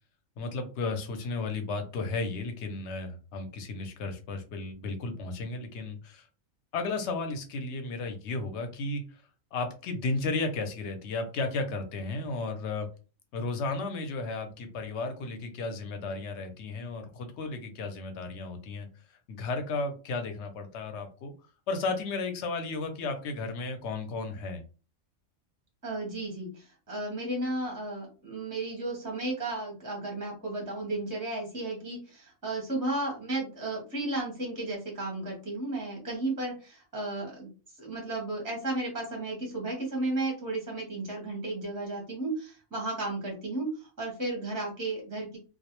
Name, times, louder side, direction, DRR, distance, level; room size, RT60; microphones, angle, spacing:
voice 1, 0.4-6.3 6.7-9.2 9.5-12.9 13.3-21.3 21.7-24.6, left 3 dB, 65° left, 6 dB, 0.8 m, -34 dB
voice 2, 25.8-37.5 37.8-45.4, right 2 dB, 20° right, -1 dB, 0.6 m, -34 dB
2.3 x 2.0 x 2.9 m, 0.34 s
omnidirectional pair, 1.4 m